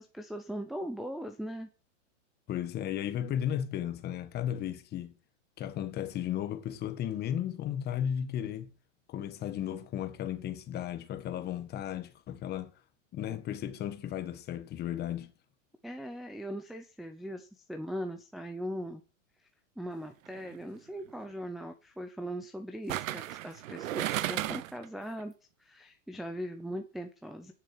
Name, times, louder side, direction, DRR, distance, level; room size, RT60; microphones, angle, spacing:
voice 1, 0.0-1.7 15.8-19.0 19.8-25.3 25.6-27.5, equal, ahead, 0.6 m, -40 dB
voice 2, 2.5-5.1 5.6-8.7 9.1-12.7 13.1-15.3, left 10 dB, 25° left, 1.3 m, -35 dB
sound 1, 20.3-20.5 22.9-24.8 25.2-25.3, right 13 dB, 80° right, 0.9 m, -34 dB
10.5 x 7.3 x 7.5 m
supercardioid pair, 145°, 39 cm